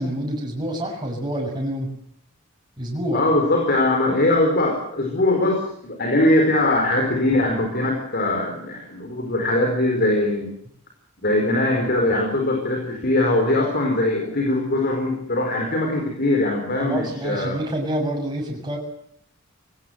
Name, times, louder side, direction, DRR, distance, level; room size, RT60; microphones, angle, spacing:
voice 1, 0.0-1.9 2.8-3.3 16.8-18.8, equal, 20° right, 0 dB, 7.2 m, -27 dB
voice 2, 3.1-10.5 11.2-17.6, left 1 dB, 50° left, 2 dB, 4.5 m, -21 dB
23.0 x 18.5 x 7.9 m, 0.67 s
head